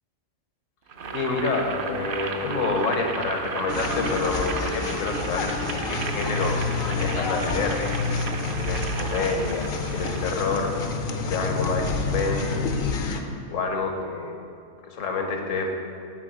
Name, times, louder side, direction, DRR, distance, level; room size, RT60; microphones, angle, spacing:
Boiling, 0.9-10.3, right 4 dB, 55° right, 0.7 m, -34 dB
voice 1, 1.1-5.5 5.8-7.8 8.5-10.8 11.1-12.7 13.2-14.4 14.9-15.7, left 3 dB, 75° left, 3 dB, 1.4 m, -28 dB
sound 1, 3.7-13.2, left 4 dB, 55° left, 0.7 m, -28 dB
8.9 x 4.3 x 7.4 m, 2.4 s
omnidirectional pair, 1.3 m